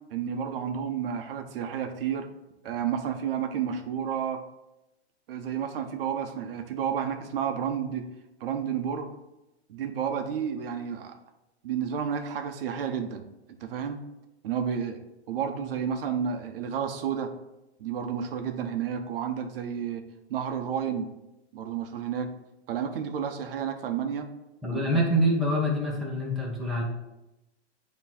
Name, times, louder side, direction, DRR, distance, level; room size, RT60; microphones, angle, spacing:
voice 1, 0.1-2.3 2.6-4.4 5.3-8.1 8.4-9.2 9.7-11.2 11.6-13.3 13.6-14.0 14.4-15.0 15.3-17.3 17.8-20.0 20.3-21.1 21.5-22.3 22.7-24.3 24.7-25.0, right 8 dB, 55° right, 5 dB, 0.9 m, -31 dB
voice 2, 24.6-26.8, equal, ahead, -5 dB, 1.1 m, -25 dB
8.4 x 3.1 x 4.2 m, 0.94 s
hypercardioid pair, 135°, 34 cm